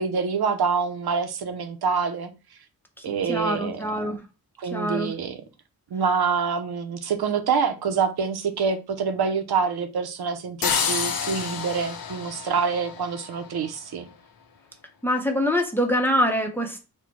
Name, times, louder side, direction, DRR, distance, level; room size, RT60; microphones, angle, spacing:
voice 1, 0.0-2.3 3.0-4.1 4.6-5.4 5.9-14.1, right 5 dB, 90° right, 0.7 m, -26 dB
voice 2, 3.0-4.2 4.6-5.1 15.0-16.8, equal, 5° left, 0.6 m, -25 dB
sound 1, 10.6-13.5, left 6 dB, 70° left, 0.6 m, -29 dB
4.3 x 2.1 x 4.4 m
wide cardioid pair, 175°, 37 cm